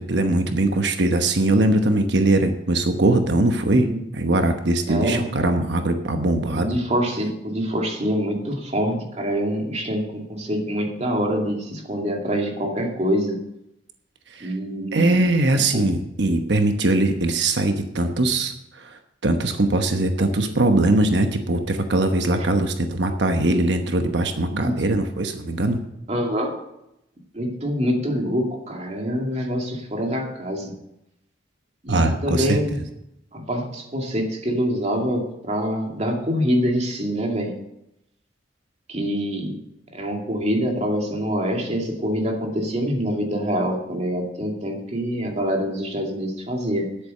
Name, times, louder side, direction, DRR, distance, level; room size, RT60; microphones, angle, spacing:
voice 1, 0.0-3.9 4.1-6.7 14.3-14.5 14.9-25.8 31.9-32.6, right 2 dB, 70° right, 6 dB, 1.1 m, -21 dB
voice 2, 4.9-5.3 6.5-13.4 14.4-15.2 15.7-15.9 24.5-25.0 26.1-26.6 27.3-30.7 31.8-32.8 33.3-37.6 38.9-39.6 39.9-47.0, equal, 40° right, 1 dB, 2.4 m, -25 dB
10.5 x 8.4 x 6.6 m, 0.83 s
head